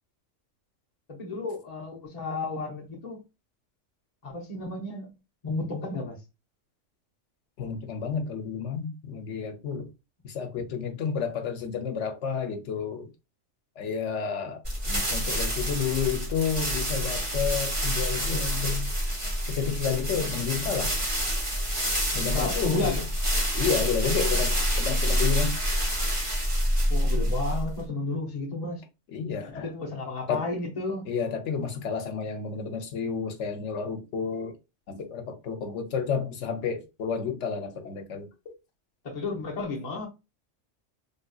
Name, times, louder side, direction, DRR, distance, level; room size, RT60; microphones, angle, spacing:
voice 1, 1.1-3.2 4.2-5.1 5.4-6.2 10.6-10.7 22.3-23.0 26.9-28.8 29.5-31.1 39.0-40.1, left 3 dB, 35° left, 0.8 m, -32 dB
voice 2, 7.6-9.9 10.2-13.1 13.8-18.9 19.5-20.9 22.1-23.1 23.5-25.6 29.1-29.7 30.3-30.5 31.0-34.5 34.9-38.5, left 6 dB, 70° left, 1.0 m, -31 dB
sound 1, 14.6-27.8, equal, 25° right, 1.2 m, -27 dB
3.5 x 2.7 x 2.2 m
omnidirectional pair, 1.3 m